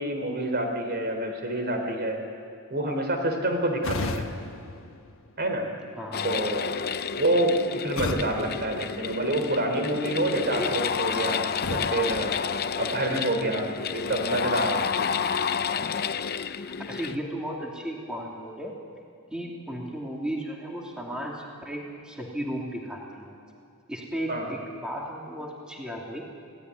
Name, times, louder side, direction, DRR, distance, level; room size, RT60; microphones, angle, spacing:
voice 1, 0.0-2.2 2.7-4.3 5.4-5.7 6.2-6.7 7.1-12.3 12.8-15.1 24.3-24.5, right 1 dB, 45° right, 4 dB, 3.6 m, -27 dB
sound 1, 3.8-5.8 8.0-9.7 11.6-13.2, left 2 dB, 65° left, 1.5 m, -36 dB
voice 2, 6.0-6.3 10.4-10.8 13.1-13.3 15.7-15.9 16.9-18.7 19.3-23.3 23.9-26.2, equal, 5° right, -2 dB, 2.9 m, -35 dB
sound 2, 6.1-17.2, left 6 dB, 45° left, 0.7 m, -30 dB
28.0 x 17.5 x 9.7 m, 2.4 s
head